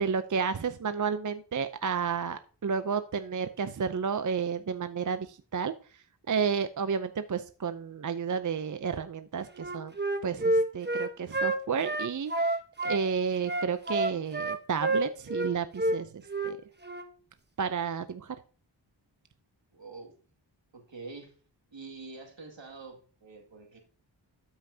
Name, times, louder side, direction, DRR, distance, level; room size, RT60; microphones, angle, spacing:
voice 1, 0.0-5.7 6.3-9.9 10.2-12.6 12.8-16.1 16.4-16.6 17.6-18.3, right 6 dB, 40° right, 0.6 m, -31 dB
Wind instrument woodwind instrument, 9.5-13.0 13.4-15.5 15.8-16.0 16.3-16.5 16.8-17.1, right 2 dB, 20° right, 1.1 m, -29 dB
voice 2, 19.7-20.1 20.7-21.3 21.7-23.8, right 3 dB, 75° right, 2.3 m, -46 dB
12.5 x 5.6 x 2.8 m
cardioid pair, 45°, 46 cm